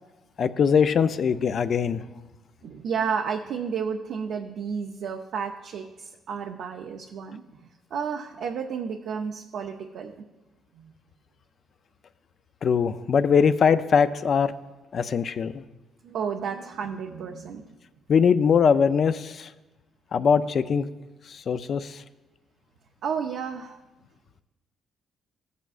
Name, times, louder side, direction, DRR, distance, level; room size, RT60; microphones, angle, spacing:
voice 1, 0.4-2.0 12.6-14.5 14.9-15.6 18.1-19.5 20.1-20.8 21.3-22.0, left 6 dB, 55° left, 12 dB, 0.4 m, -21 dB
voice 2, 2.6-7.4 7.9-10.2 10.8-10.9 15.1-15.2 16.0-17.6 23.0-23.8, right 6 dB, 75° right, 3 dB, 0.5 m, -32 dB
15.0 x 8.2 x 2.5 m, 1.1 s
cardioid pair, 90°, 0 cm